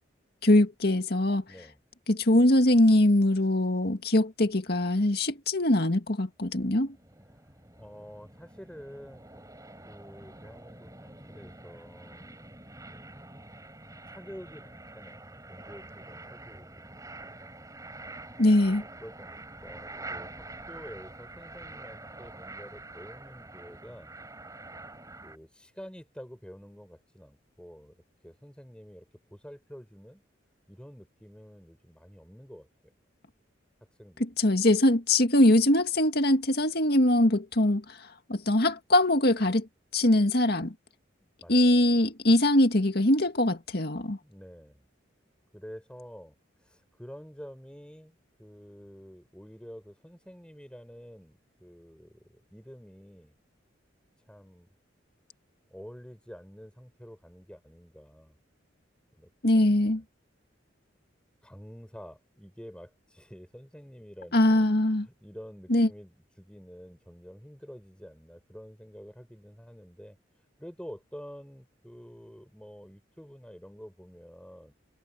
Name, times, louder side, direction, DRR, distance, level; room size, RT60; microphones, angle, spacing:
voice 1, 0.4-1.4 2.1-7.0 18.4-18.8 34.2-39.7 39.9-40.7 41.5-44.2 59.4-60.0 64.3-65.1 65.7-65.9, left 1 dB, 55° left, 2.0 m, -22 dB
voice 2, 1.5-1.8 7.4-9.4 9.9-12.4 12.9-13.4 14.1-17.6 18.7-24.1 25.2-30.2 30.7-32.7 33.8-34.3 41.4-41.8 44.2-44.8 45.5-53.3 54.2-54.7 55.7-58.4 59.2-60.0 61.4-64.7 65.1-70.2 70.6-74.7, equal, 5° left, 7.1 m, -48 dB
sound 1, 6.4-25.4, right 2 dB, 15° right, 6.7 m, -46 dB
head